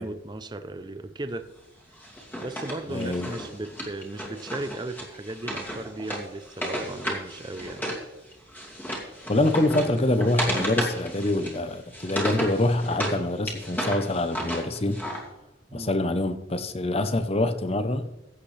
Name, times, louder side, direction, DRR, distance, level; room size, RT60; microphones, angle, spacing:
voice 1, 0.0-1.5 2.4-7.8 15.7-16.0, right 2 dB, 25° right, 0.5 m, -36 dB
Wood, 2.0-8.0 8.3-13.2 13.5-15.2, equal, 10° left, 2.4 m, -33 dB
voice 2, 2.9-3.3 9.3-15.0 15.7-18.1, left 1 dB, 35° left, 0.8 m, -25 dB
15.5 x 8.9 x 3.3 m
head